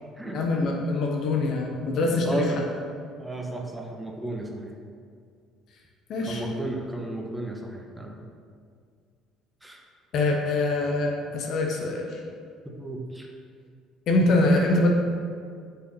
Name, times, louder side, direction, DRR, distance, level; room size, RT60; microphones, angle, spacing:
voice 1, 0.3-2.5 6.1-6.4 10.1-12.2 14.1-14.9, left 2 dB, 55° left, 1 dB, 1.2 m, -24 dB
voice 2, 2.0-2.6 3.2-4.8 6.3-8.2 9.6-9.8 11.8-11.9 12.6-13.3, right 2 dB, 10° right, 1 dB, 1.2 m, -34 dB
6.2 x 5.8 x 5.6 m, 2.2 s
hypercardioid pair, 55°, 0 cm